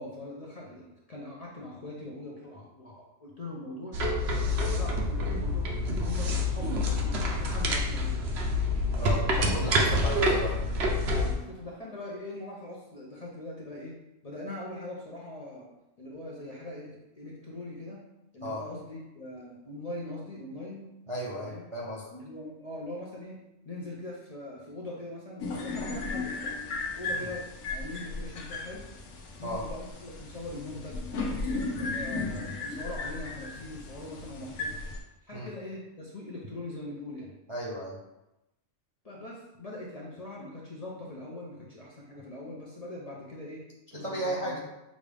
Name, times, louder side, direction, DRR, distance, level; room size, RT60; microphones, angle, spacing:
voice 1, 0.0-4.0 4.7-8.2 9.0-9.3 11.1-14.0 14.2-15.7 16.0-18.0 18.3-20.9 21.4-21.6 22.1-23.4 23.6-26.5 27.0-28.9 29.4-31.0 31.3-34.8 35.2-37.3 39.0-43.6 43.9-44.6, left 1 dB, 35° left, -4 dB, 0.7 m, -41 dB
sound 1, 3.9-11.3, left 1 dB, 60° right, 0.9 m, -27 dB
voice 2, 8.9-10.6 18.4-18.6 21.1-22.0 27.1-27.3 29.4-29.6 35.3-35.5 37.5-38.0 43.9-44.6, right 1 dB, 35° right, -5 dB, 0.6 m, -34 dB
sound 2, 25.4-35.0, left 3 dB, 70° left, 1.0 m, -35 dB
6.4 x 2.5 x 3.4 m, 0.91 s
omnidirectional pair, 1.3 m